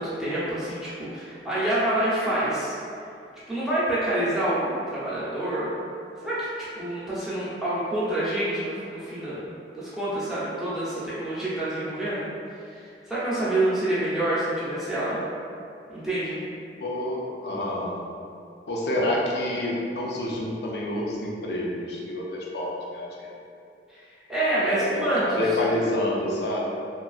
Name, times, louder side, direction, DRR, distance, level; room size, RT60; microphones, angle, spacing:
voice 1, 0.0-2.7 3.5-5.7 6.2-12.3 12.7-15.2 15.9-16.4 23.9-25.4, right 1 dB, ahead, -11 dB, 0.7 m, -27 dB
voice 2, 16.8-18.0 18.7-23.4 24.6-26.6, left 1 dB, 65° left, -3 dB, 0.5 m, -28 dB
2.9 x 2.4 x 2.4 m, 2.5 s
head